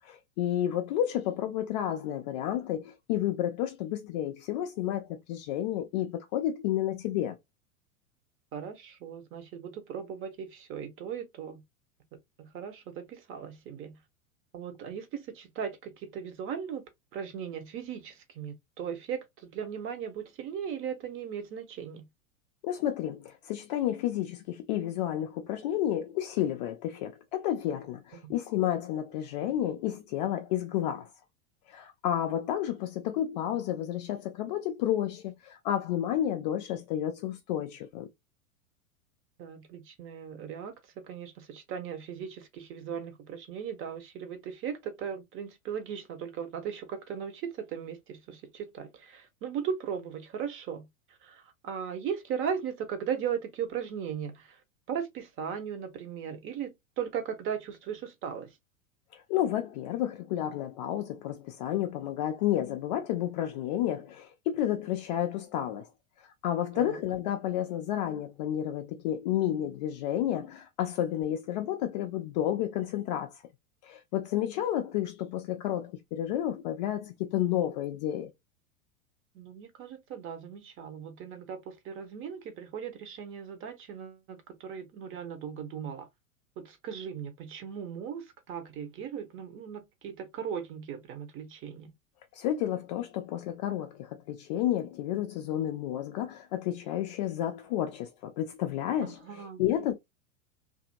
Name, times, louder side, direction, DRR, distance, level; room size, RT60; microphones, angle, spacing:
voice 1, 0.0-7.4 22.6-31.1 31.7-38.1 59.1-65.9 66.2-73.4 73.8-78.3 92.3-99.9, left 11 dB, 35° left, 0.4 m, -31 dB
voice 2, 8.5-11.6 12.4-14.0 14.5-22.1 28.2-28.3 39.4-58.6 66.7-67.0 79.3-86.1 86.6-91.9 99.0-99.6, right 7 dB, 30° right, 0.9 m, -38 dB
2.7 x 2.6 x 2.6 m
figure-of-eight pair, 90°, 42 cm